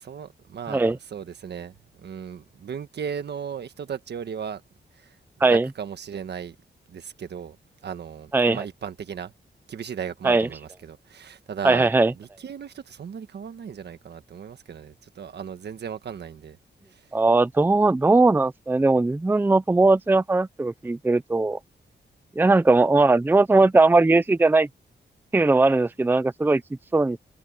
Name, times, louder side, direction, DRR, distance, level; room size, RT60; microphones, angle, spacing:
voice 1, 0.0-4.6 4.9-5.2 5.5-6.6 6.9-7.6 7.8-9.3 9.7-16.6 16.9-17.1, right 7 dB, 65° right, 1.4 m, -36 dB
voice 2, 8.3-8.6 10.2-10.5 11.6-12.1 17.1-21.6 22.4-24.7 25.3-26.6 26.9-27.2, right 3 dB, 10° right, 0.6 m, -19 dB
wide cardioid pair, 160°, 19 cm